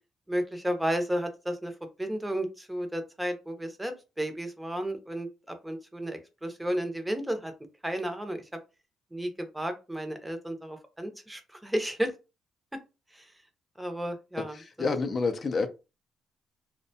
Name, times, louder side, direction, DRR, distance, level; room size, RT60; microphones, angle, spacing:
voice 1, 0.3-1.7 2.0-7.5 7.8-8.4 9.1-12.1 13.2-13.3 13.8-14.6, equal, 5° right, 0.6 m, -32 dB
voice 2, 14.4-15.7, left 4 dB, 40° left, 0.4 m, -29 dB
2.5 x 2.1 x 2.7 m
cardioid pair, 90°, 0 cm